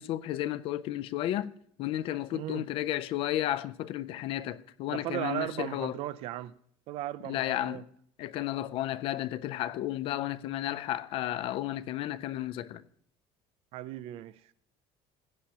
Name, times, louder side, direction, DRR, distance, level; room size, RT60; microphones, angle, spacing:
voice 1, 0.0-1.5 1.8-6.0 7.2-7.8 8.2-12.8, left 13 dB, 50° left, 0.4 m, -33 dB
voice 2, 2.3-2.7 4.9-6.5 6.9-7.8 13.7-14.5, right 14 dB, 50° right, 0.4 m, -36 dB
15.5 x 8.9 x 2.8 m
cardioid pair, 165°, 12 cm